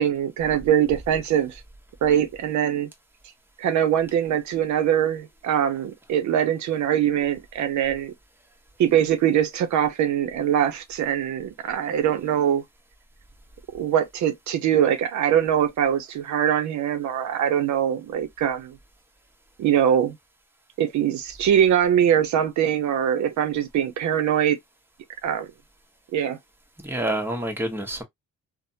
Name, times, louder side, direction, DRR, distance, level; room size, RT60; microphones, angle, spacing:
voice 1, 0.0-1.6 2.0-2.9 3.6-8.1 8.8-12.6 13.7-18.8 19.6-20.2 20.8-24.6 25.2-25.5 26.1-26.4, right 9 dB, 70° right, 0.6 m, -22 dB
voice 2, 26.8-28.0, right 1 dB, 5° right, 0.9 m, -27 dB
3.2 x 2.0 x 2.6 m
cardioid pair, 90°, 30 cm